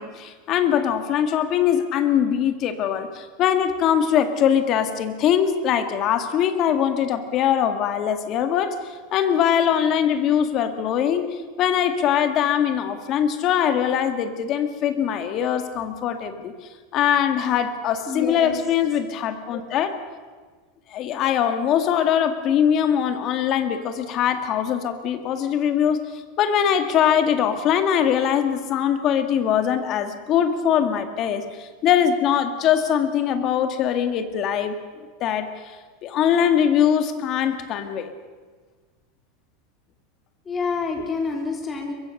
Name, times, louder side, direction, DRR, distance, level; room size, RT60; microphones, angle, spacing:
voice 1, 0.0-8.8 9.1-11.3 11.6-16.5 16.9-19.9 20.9-26.0 26.4-35.5 36.0-38.1, left 9 dB, 35° left, 8 dB, 1.9 m, -22 dB
voice 2, 18.1-18.5 40.5-41.9, left 4 dB, 15° left, 2 dB, 3.3 m, -27 dB
23.0 x 22.5 x 6.6 m, 1.5 s
supercardioid pair, 165°, 0 cm